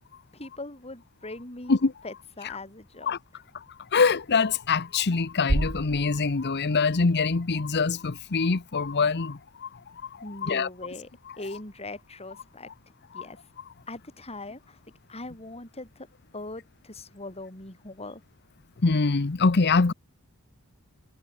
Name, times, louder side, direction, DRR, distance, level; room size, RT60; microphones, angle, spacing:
voice 1, 0.3-1.8 2.0-3.2 10.2-11.1 11.4-12.7 13.1-13.4 13.9-14.8 15.1-16.1 16.3-18.2, left 2 dB, 30° left, 6.3 m, -40 dB
voice 2, 3.9-9.7 10.4-10.7 13.1-13.2 18.8-19.9, left 4 dB, 50° left, 0.8 m, -24 dB
sound 1, 5.5-7.6, right 1 dB, 80° right, 2.0 m, -31 dB
head